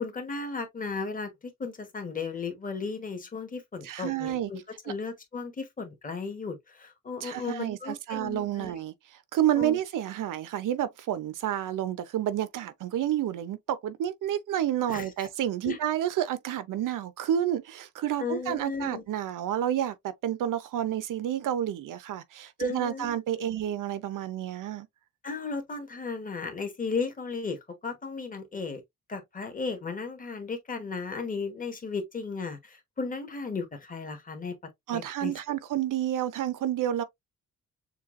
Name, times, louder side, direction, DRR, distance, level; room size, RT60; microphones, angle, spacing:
voice 1, 0.0-1.3 1.6-8.7 9.6-9.8 14.9-15.3 15.6-15.8 18.2-19.0 22.6-23.5 25.2-28.8 29.1-34.6 34.9-35.3, left 4 dB, 25° left, 1.2 m, -35 dB
voice 2, 3.8-4.5 7.2-8.9 9.3-24.9 34.9-37.0, right 11 dB, 85° right, 0.7 m, -30 dB
6.8 x 2.4 x 2.5 m
wide cardioid pair, 160°, 31 cm